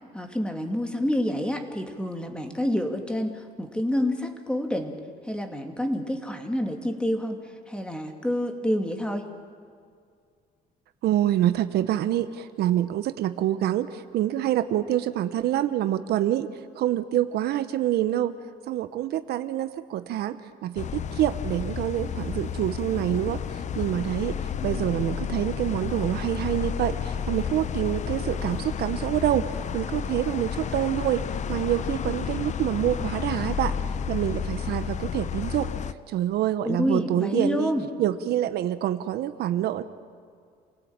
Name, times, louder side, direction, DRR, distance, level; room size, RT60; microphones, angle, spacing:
voice 1, 0.1-5.0 5.2-9.2 36.6-37.9, equal, 5° left, 5 dB, 2.7 m, -28 dB
voice 2, 11.0-16.5 16.8-18.3 18.7-23.4 23.7-24.4 24.6-29.5 29.7-31.2 31.5-33.7 34.1-35.7 36.1-37.7 38.0-39.8, right 12 dB, 70° right, 11 dB, 1.1 m, -26 dB
sound 1, 20.8-35.9, left 7 dB, 45° left, 0.8 m, -31 dB
28.5 x 17.5 x 8.9 m, 2.2 s
cardioid pair, 110°, 17 cm